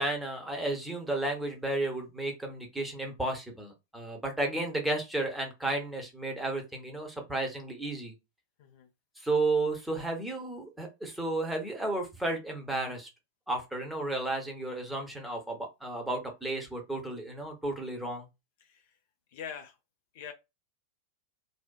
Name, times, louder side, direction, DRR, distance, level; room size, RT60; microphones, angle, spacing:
voice 1, 0.0-8.1 9.2-13.1 13.5-18.3, right 2 dB, 5° right, 0.7 m, -33 dB
voice 2, 18.6-18.9 19.3-19.8 20.1-20.3, left 7 dB, 50° left, 0.4 m, -43 dB
2.6 x 2.1 x 2.2 m
figure-of-eight pair, 90°, 0 cm